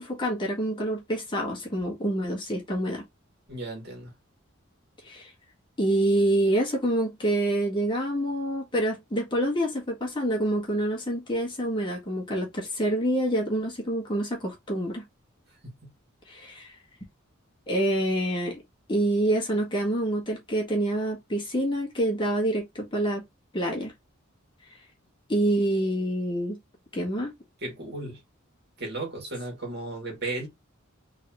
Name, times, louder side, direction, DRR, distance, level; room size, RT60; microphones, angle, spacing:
voice 1, 0.0-3.0 5.0-5.3 5.8-15.0 16.3-16.8 17.7-18.6 18.9-23.2 23.5-23.9 25.3-26.6 26.9-27.3, right 1 dB, 25° left, 1.6 m, -27 dB
voice 2, 3.5-4.1 15.6-15.7 27.6-28.2 28.8-30.5, right 2 dB, 50° right, 2.5 m, -35 dB
3.9 x 3.8 x 3.0 m
head